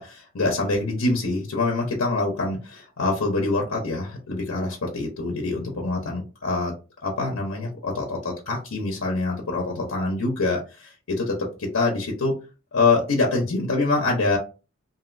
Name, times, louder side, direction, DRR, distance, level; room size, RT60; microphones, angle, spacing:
voice 1, 0.0-6.7 7.0-12.4 12.7-14.4, left 3 dB, 75° left, 0 dB, 0.7 m, -25 dB
2.9 x 2.7 x 2.5 m, 0.32 s
head